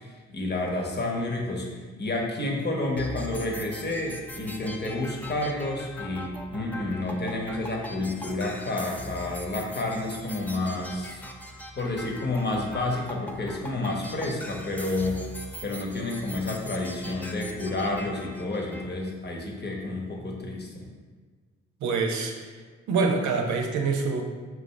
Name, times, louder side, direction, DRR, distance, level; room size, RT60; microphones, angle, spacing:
voice 1, 0.0-1.7 2.0-11.2 11.8-15.2 15.6-20.9, left 2 dB, 35° left, 0 dB, 1.0 m, -30 dB
sound 1, 3.0-18.9, left 1 dB, 5° left, 0.5 m, -41 dB
voice 2, 21.8-24.2, right 4 dB, 70° right, 3 dB, 0.7 m, -26 dB
5.8 x 2.5 x 3.1 m, 1.5 s
hypercardioid pair, 45°, 30 cm